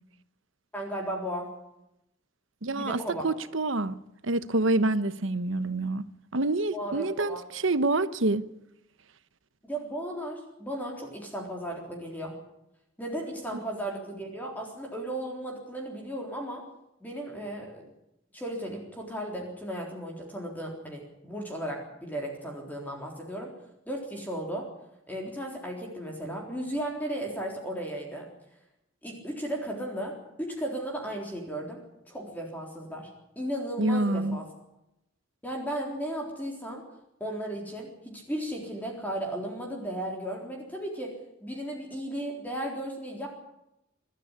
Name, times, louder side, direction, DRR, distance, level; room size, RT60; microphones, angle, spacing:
voice 1, 0.7-1.5 2.7-3.3 6.7-7.4 9.6-12.3 13.0-16.6 17.0-17.8 18.3-23.5 23.9-24.7 25.1-28.3 29.0-33.1 33.4-34.5 35.4-36.8 37.2-41.2 41.4-43.3, right 1 dB, 10° left, 3.8 m, -35 dB
voice 2, 2.6-3.0 3.2-6.0 6.3-8.4 33.8-34.4, right 2 dB, 75° right, 1.0 m, -27 dB
24.5 x 13.0 x 9.9 m
head